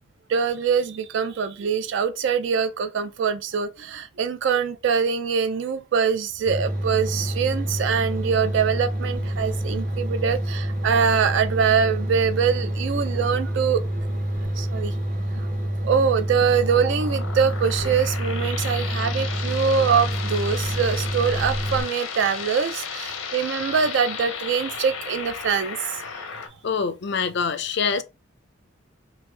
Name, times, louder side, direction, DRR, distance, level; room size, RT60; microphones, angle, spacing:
voice 1, 0.3-13.8 14.6-14.9 15.8-26.2, right 6 dB, 60° right, 0.3 m, -23 dB
sound 1, 6.5-21.8, right 1 dB, 40° right, 0.8 m, -27 dB
sound 2, 16.4-26.5, left 6 dB, 85° left, 0.7 m, -34 dB
voice 2, 26.6-28.0, left 5 dB, 55° left, 0.4 m, -25 dB
3.3 x 2.5 x 3.2 m
head